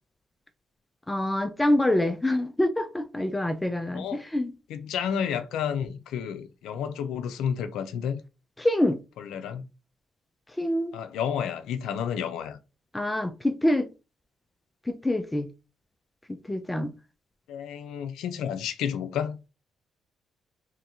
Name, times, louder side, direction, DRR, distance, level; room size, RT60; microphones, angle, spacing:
voice 1, 1.1-4.5 8.6-9.0 10.6-10.9 12.9-13.9 14.9-15.5 16.3-16.9, left 1 dB, 10° left, 0.4 m, -26 dB
voice 2, 4.7-8.2 9.2-9.7 10.9-12.6 17.5-19.4, left 8 dB, 85° left, 0.5 m, -31 dB
3.1 x 2.5 x 4.3 m
cardioid pair, 90°, 0 cm